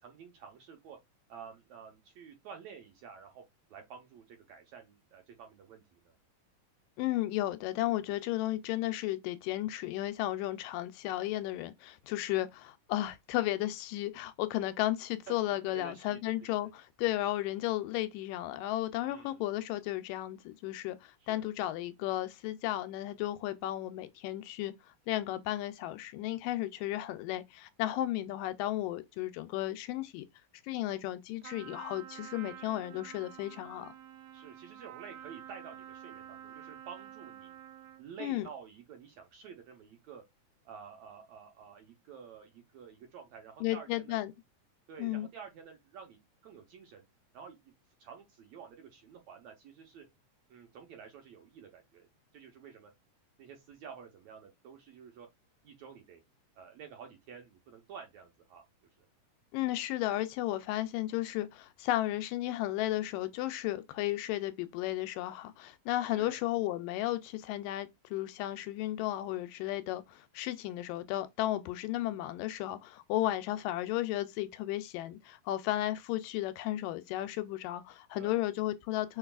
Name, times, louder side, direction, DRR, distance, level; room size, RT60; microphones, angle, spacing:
voice 1, 0.0-1.0 1.3-3.4 3.7-6.1 15.3-15.4 15.7-16.2 19.0-19.4 21.3-21.5 34.3-37.6 38.0-40.2 40.7-44.2 44.9-47.0 47.3-47.6 48.0-50.1 50.5-52.1 52.3-52.9 53.4-55.3 55.6-56.2 56.6-58.6 59.0-59.1 66.1-66.4 78.2-78.4, right 7 dB, 70° right, 1.8 m, -50 dB
voice 2, 7.0-30.3 30.6-33.9 38.2-38.5 43.6-44.3 45.0-45.3 59.5-79.2, left 15 dB, 80° left, 2.1 m, -34 dB
Trumpet, 31.4-38.1, right 11 dB, 85° right, 2.6 m, -49 dB
5.6 x 4.0 x 2.3 m
omnidirectional pair, 4.0 m